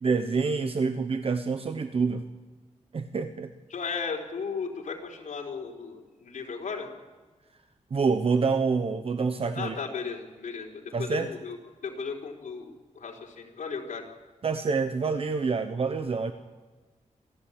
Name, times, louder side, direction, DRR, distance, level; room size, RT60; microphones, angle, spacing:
voice 1, 0.0-2.2 2.9-3.5 7.9-9.8 10.9-11.3 14.4-16.3, right 4 dB, 50° right, 8 dB, 1.1 m, -27 dB
voice 2, 3.7-6.9 9.6-11.6 11.8-14.0, left 5 dB, 85° left, 0 dB, 3.9 m, -35 dB
26.5 x 15.0 x 8.7 m, 1.3 s
wide cardioid pair, 150°, 13 cm